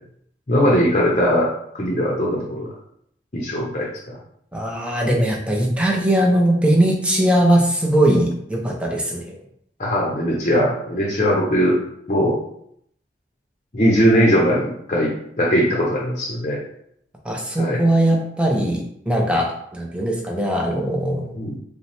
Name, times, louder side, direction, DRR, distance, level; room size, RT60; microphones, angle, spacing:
voice 1, 0.5-1.5 1.7-2.7 3.3-4.2 9.8-11.8 12.1-12.4 13.7-16.6 17.6-17.8 21.3-21.6, equal, 40° left, -4 dB, 0.7 m, -20 dB
voice 2, 4.5-9.3 17.2-21.3, right 1 dB, 5° right, 0 dB, 0.6 m, -20 dB
5.1 x 2.2 x 3.4 m, 0.71 s
head